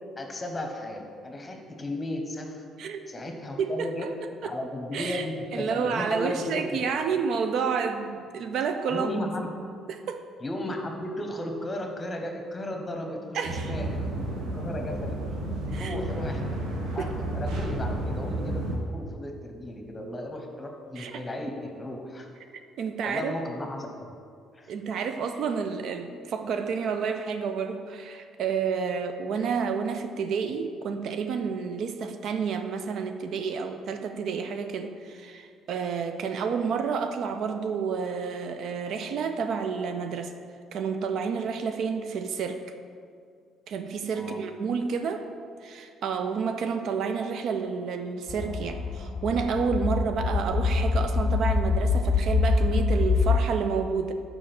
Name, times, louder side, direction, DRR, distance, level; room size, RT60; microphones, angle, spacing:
voice 1, 0.2-2.6 3.1-4.1 4.4-6.8 8.9-9.5 10.4-15.4 15.7-16.4 16.9-22.3 23.0-24.1 24.5-24.7 44.1-44.4, left 1 dB, 20° left, 3 dB, 1.0 m, -35 dB
voice 2, 3.6-4.1 4.4-4.5 4.9-5.3 5.5-9.1 9.9-10.2 13.3-13.7 15.7-15.9 17.0-17.1 21.0-21.2 22.8-23.3 24.7-40.3 40.7-42.6 43.7-45.3 45.6-54.1, right 6 dB, 65° right, 7 dB, 0.4 m, -30 dB
sound 1, 13.4-18.8, right 1 dB, 85° right, 1.0 m, -31 dB
sound 2, 48.3-53.4, left 4 dB, 40° left, 0.4 m, -25 dB
5.0 x 4.8 x 5.9 m, 2.2 s
cardioid pair, 95°, 0 cm